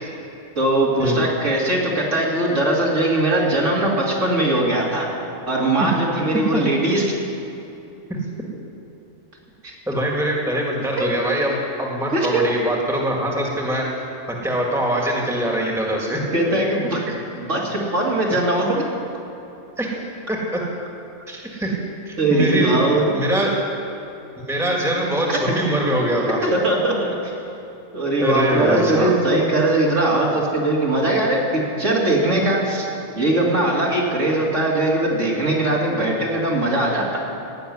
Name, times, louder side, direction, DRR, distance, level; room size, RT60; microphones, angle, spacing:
voice 1, 0.6-5.1 5.5-7.0 9.6-9.7 11.0-11.1 12.1-12.5 16.3-17.1 17.3-18.8 22.2-23.1 25.3-25.4 26.4-27.4 27.9-32.9 33.2-37.2, right 1 dB, 70° right, -4 dB, 2.9 m, -20 dB
voice 2, 6.3-6.6 8.1-8.2 9.9-13.9 14.3-16.2 17.1-17.2 18.3-18.4 19.8-19.9 20.3-20.6 21.3-21.8 22.1-22.8 23.1-23.7 24.5-26.5 28.2-29.1, right 1 dB, ahead, -2 dB, 2.0 m, -23 dB
16.5 x 6.9 x 9.6 m, 2.9 s
omnidirectional pair, 1.3 m